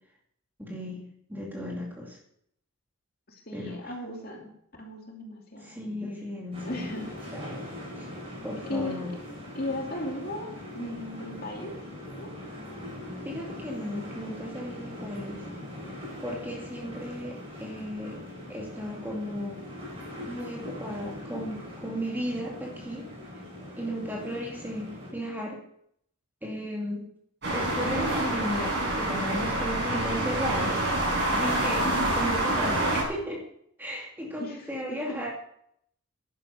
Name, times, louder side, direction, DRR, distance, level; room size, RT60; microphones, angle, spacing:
voice 1, 0.6-2.2 3.5-3.9 5.6-6.9 7.3-7.6 8.0-8.1 8.4-9.1 13.2-15.4 16.2-18.2 18.5-19.6 20.3-23.1 23.8-25.6 26.4-27.0 27.5-30.8 31.3-31.9 32.1-33.4 33.8-35.3, equal, 10° right, -2 dB, 2.4 m, -35 dB
voice 2, 3.3-4.5 4.8-5.7 6.6-7.2 8.6-9.0 9.5-10.5 10.7-11.7 12.2-12.3 31.8-32.1 34.4-35.3, left 1 dB, 45° left, 0 dB, 2.9 m, -36 dB
sound 1, 6.5-25.1, left 1 dB, 25° right, 6.2 m, -41 dB
sound 2, 27.4-33.0, right 1 dB, 55° right, 6.8 m, -27 dB
11.0 x 10.5 x 7.0 m, 0.70 s
head